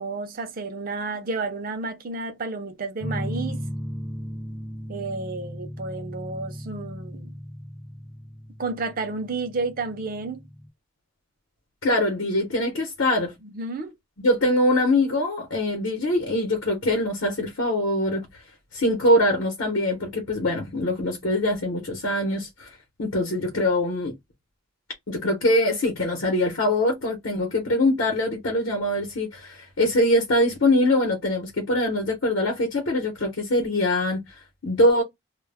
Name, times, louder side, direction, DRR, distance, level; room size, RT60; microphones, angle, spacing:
voice 1, 0.0-3.6 4.9-7.3 8.6-10.4 13.4-13.9, right 3 dB, 45° right, 0.5 m, -31 dB
sound 1, 3.0-10.7, equal, 5° left, 0.6 m, -36 dB
voice 2, 11.8-13.3 14.2-18.3 18.7-24.1 25.1-35.0, left 1 dB, 65° left, 0.8 m, -23 dB
2.2 x 2.0 x 3.3 m
head